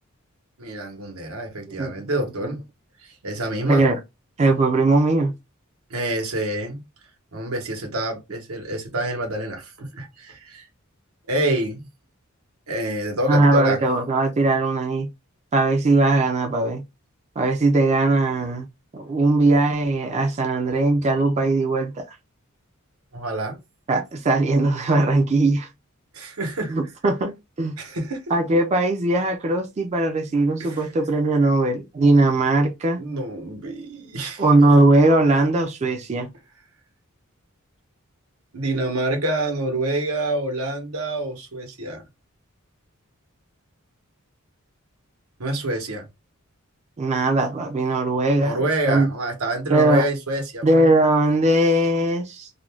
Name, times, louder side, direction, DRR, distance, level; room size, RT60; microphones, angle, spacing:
voice 1, 0.6-2.6 3.0-3.8 5.9-6.8 7.3-10.7 11.3-11.9 12.7-13.8 23.1-23.6 26.1-26.7 27.8-28.2 30.6-30.9 33.0-34.5 38.5-42.0 45.4-46.0 48.4-50.7, right 1 dB, 85° right, 0.9 m, -27 dB
voice 2, 3.7-4.0 4.4-5.3 13.3-15.1 15.5-16.8 17.4-18.7 18.9-22.2 23.9-25.7 26.7-27.3 27.6-27.8 28.3-33.0 34.4-36.3 47.0-48.6 48.9-49.1 49.7-50.1 50.6-52.5, right 2 dB, 30° right, 0.4 m, -19 dB
2.4 x 2.2 x 3.2 m
head